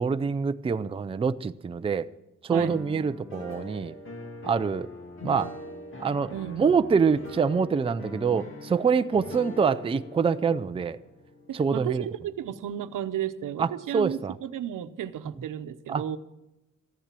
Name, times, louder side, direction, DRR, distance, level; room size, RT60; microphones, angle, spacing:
voice 1, 0.0-2.1 2.4-3.9 4.4-4.9 5.2-5.5 6.0-6.3 6.6-11.0 11.5-12.1 13.6-14.3 15.9-16.2, right 5 dB, 20° right, 11 dB, 0.4 m, -25 dB
sound 1, 2.6-12.5, left 2 dB, 40° left, 2.3 m, -42 dB
voice 2, 6.3-6.7 11.5-16.2, right 10 dB, 90° right, 10 dB, 0.9 m, -33 dB
14.5 x 10.0 x 7.5 m, 0.93 s
wide cardioid pair, 150°, 31 cm